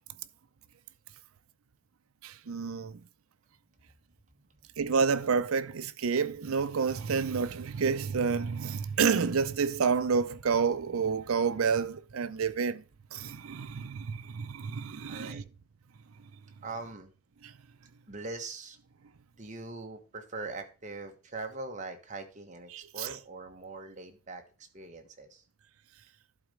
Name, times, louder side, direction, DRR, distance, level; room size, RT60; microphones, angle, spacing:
voice 1, 2.2-3.0 4.8-12.8 13.1-15.4 17.4-17.5 22.7-23.2, right 5 dB, 85° right, 0.6 m, -29 dB
voice 2, 15.1-15.4 16.6-17.1 18.1-18.8 19.3-25.4, right 3 dB, 35° right, 1.3 m, -42 dB
11.5 x 4.1 x 5.0 m
head